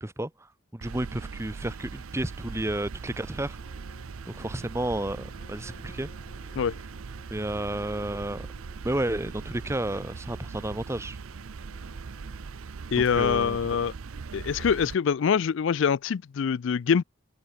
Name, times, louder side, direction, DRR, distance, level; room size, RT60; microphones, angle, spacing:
voice 1, 0.0-3.6 4.3-6.1 7.3-8.5 8.8-11.2 12.9-13.8 14.4-14.5, right 1 dB, 10° right, 0.9 m, -32 dB
sound 1, 0.8-14.9, right 4 dB, 75° right, 0.6 m, -40 dB
sound 2, 3.1-12.7, left 1 dB, 40° left, 5.1 m, -56 dB
voice 2, 12.9-13.9 14.3-17.0, left 6 dB, 60° left, 0.4 m, -24 dB
open air
head